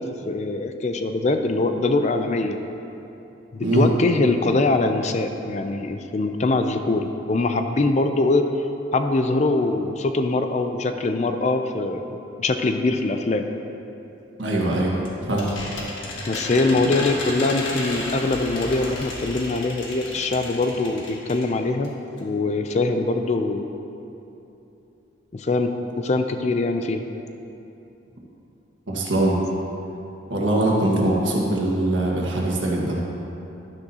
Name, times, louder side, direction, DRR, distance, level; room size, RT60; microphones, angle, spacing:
voice 1, 0.0-2.6 3.5-8.5 8.9-13.5 16.3-21.9 22.2-23.7 25.3-27.0, left 2 dB, 35° left, 7 dB, 0.4 m, -23 dB
voice 2, 14.4-15.0 15.2-15.5 28.9-29.4 30.3-33.0, right 1 dB, 70° right, -3 dB, 1.6 m, -22 dB
sound 1, 14.6-21.5 21.8-21.9 22.2-22.3, left 2 dB, 75° left, 1.5 m, -33 dB
11.5 x 9.8 x 2.8 m, 2.9 s
head